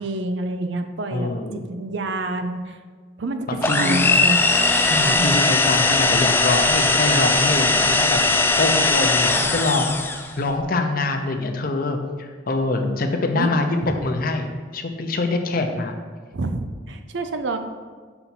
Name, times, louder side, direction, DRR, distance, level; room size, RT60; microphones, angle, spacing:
voice 1, 0.0-2.8 3.2-4.4 5.0-5.4 13.3-13.5 13.8-13.9 16.3-17.6, right 2 dB, 70° right, 7 dB, 0.5 m, -28 dB
voice 2, 1.1-1.6 3.5-4.0 4.9-10.0 10.4-15.9, left 2 dB, 50° left, 5 dB, 0.6 m, -24 dB
sound 1, 3.6-10.3, left 3 dB, 10° left, 0.3 m, -19 dB
5.8 x 4.1 x 5.8 m, 1.5 s
head